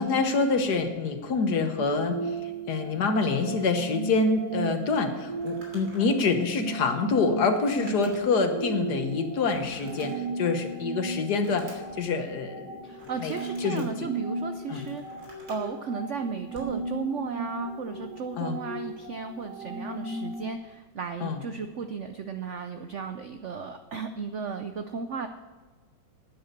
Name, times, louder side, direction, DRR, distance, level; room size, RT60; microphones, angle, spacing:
voice 1, 0.0-12.8 13.2-13.3 13.6-14.1 14.7-14.9 18.4-18.6 21.2-21.4, left 4 dB, 60° left, 7 dB, 1.6 m, -26 dB
sound 1, 1.8-20.5, right 2 dB, 45° right, 2.2 m, -36 dB
Crumpling crinkling, 5.3-8.5 8.9-9.0 9.5-10.6 11.0-12.0 13.0-13.9 14.5-15.7 16.5-16.8, right 1 dB, 65° right, 3.6 m, -50 dB
voice 2, 12.8-15.0 15.5-25.3, right 5 dB, 80° right, 8 dB, 0.6 m, -35 dB
10.5 x 9.6 x 6.6 m, 1.3 s
omnidirectional pair, 2.1 m